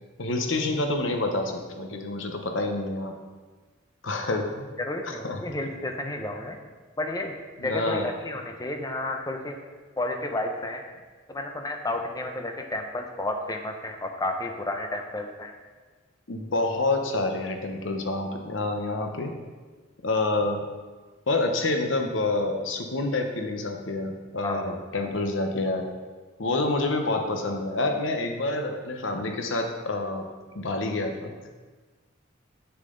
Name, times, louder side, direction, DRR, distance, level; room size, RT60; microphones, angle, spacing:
voice 1, 0.2-3.2 4.0-4.7 5.0-5.4 7.6-8.1 16.3-19.4 20.0-20.6 21.3-25.9 26.4-31.6, left 2 dB, 65° left, 4 dB, 0.9 m, -28 dB
voice 2, 4.8-6.6 7.0-7.3 7.6-9.6 10.0-10.8 11.3-15.5 24.4-24.7, left 2 dB, 20° left, 4 dB, 0.7 m, -31 dB
7.3 x 6.8 x 3.8 m, 1.4 s
head